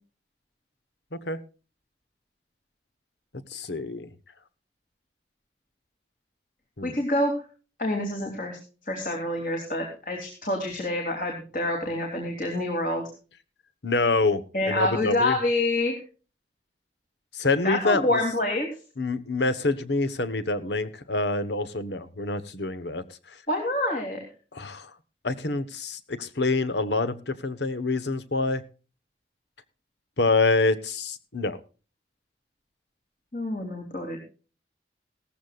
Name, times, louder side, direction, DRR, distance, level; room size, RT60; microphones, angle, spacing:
voice 1, 3.5-4.1 6.8-6.9 13.8-15.4 17.3-18.2 19.0-23.0 24.5-24.9 25.2-28.6 30.2-31.6, left 3 dB, 80° left, 14 dB, 1.2 m, -26 dB
voice 2, 6.8-7.3 7.8-8.6 8.9-13.1 14.5-16.0 17.6-18.7 23.5-24.2 33.3-34.2, left 1 dB, 50° left, 2 dB, 3.1 m, -27 dB
17.5 x 14.5 x 2.5 m, 0.35 s
head